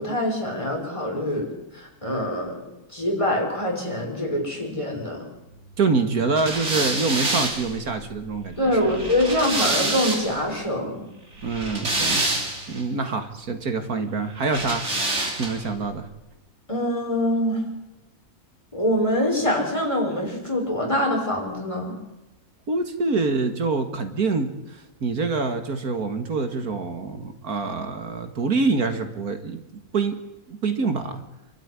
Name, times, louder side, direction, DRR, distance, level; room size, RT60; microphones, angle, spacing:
voice 1, 0.0-2.6 2.9-5.2 8.6-11.1 16.7-17.6 18.7-21.9, left 1 dB, 20° left, 0 dB, 5.8 m, -24 dB
voice 2, 5.8-9.0 11.4-12.3 12.7-14.9 15.4-16.1 22.7-29.6 29.9-30.2 30.5-31.2, right 4 dB, 70° right, 7 dB, 2.3 m, -25 dB
sound 1, 6.4-10.5 11.4-12.8 14.5-15.7, right 2 dB, 45° right, 3.6 m, -27 dB
27.5 x 13.0 x 9.8 m, 1.0 s
omnidirectional pair, 1.6 m